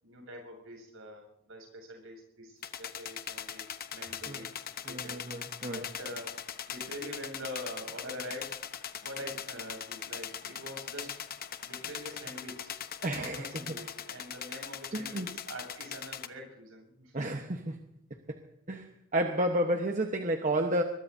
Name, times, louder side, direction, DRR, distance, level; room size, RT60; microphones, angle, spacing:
voice 1, 0.0-3.7 3.9-4.5 4.8-5.2 5.6-6.4 6.7-8.6 9.0-11.1 11.6-12.7 13.0-17.4, equal, 65° right, 2 dB, 7.6 m, -44 dB
sound 1, 2.6-16.3, left 9 dB, 40° left, 0.9 m, -41 dB
voice 2, 4.9-5.8 13.0-13.8 14.9-15.3 17.1-17.8 18.3-18.4 18.7-20.8, right 1 dB, 35° right, 4 dB, 1.1 m, -31 dB
23.0 x 22.0 x 2.7 m, 0.82 s
head